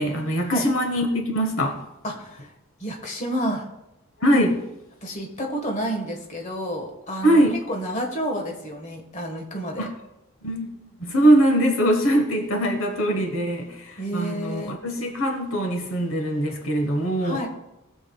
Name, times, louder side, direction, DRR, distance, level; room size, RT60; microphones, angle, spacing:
voice 1, 0.0-1.7 4.2-4.6 7.2-7.6 9.8-9.9 10.4-17.4, right 1 dB, 60° left, 4 dB, 1.2 m, -22 dB
voice 2, 2.0-2.5 2.8-3.7 5.0-7.4 7.7-9.9 14.0-14.8 17.2-17.5, equal, 35° left, 1 dB, 1.5 m, -30 dB
18.5 x 7.0 x 2.3 m, 0.92 s
head